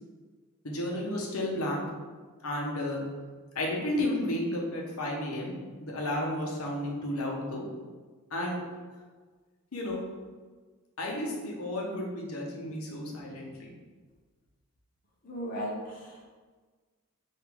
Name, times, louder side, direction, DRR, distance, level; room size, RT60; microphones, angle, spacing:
voice 1, 0.6-1.8 2.4-3.0 3.5-5.5 5.8-7.7 8.3-8.6 9.7-10.0 11.0-13.7, left 1 dB, 85° left, -2 dB, 0.9 m, -32 dB
voice 2, 15.2-16.2, equal, 40° left, -3 dB, 0.8 m, -36 dB
4.9 x 2.7 x 3.5 m, 1.4 s
head